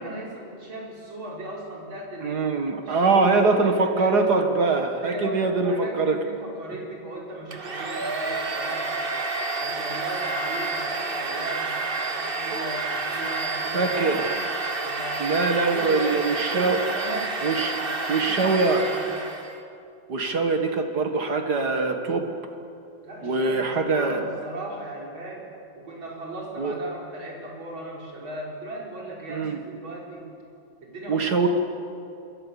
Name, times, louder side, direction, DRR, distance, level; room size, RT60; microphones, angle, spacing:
voice 1, 0.0-2.4 2.8-4.2 5.0-9.1 9.6-14.3 14.8-15.4 15.7-17.4 17.6-19.1 23.0-25.5 25.8-30.3 30.8-31.3, right 1 dB, 90° right, -2 dB, 5.2 m, -37 dB
voice 2, 2.2-6.2 12.5-12.7 13.7-14.2 15.2-16.8 17.4-17.7 18.1-18.8 20.1-22.3 23.2-24.2 26.6-26.7 29.3-29.6 31.1-31.5, right 3 dB, 55° right, 5 dB, 2.2 m, -23 dB
Domestic sounds home sounds, 7.5-19.6, right 3 dB, 30° right, 1.5 m, -29 dB
26.5 x 23.0 x 7.0 m, 2.6 s
omnidirectional pair, 2.1 m